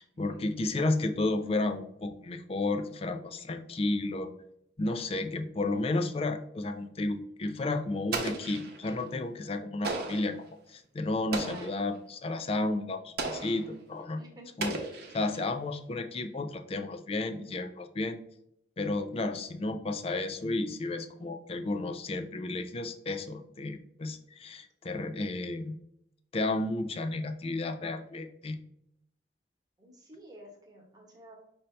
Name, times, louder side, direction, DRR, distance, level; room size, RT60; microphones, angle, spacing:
voice 1, 0.0-4.3 4.8-14.2 14.6-14.8 15.1-18.2 18.8-25.8 26.3-28.6, left 2 dB, 30° left, 8 dB, 0.4 m, -32 dB
Explosion, 8.1-9.0 9.8-10.4 11.3-11.9 13.2-13.7 14.6-15.5, right 3 dB, 60° right, 0.8 m, -35 dB
voice 2, 11.4-11.8 14.2-14.5 29.8-31.3, right 1 dB, 20° right, -2 dB, 1.2 m, -51 dB
5.4 x 2.8 x 3.2 m, 0.75 s
head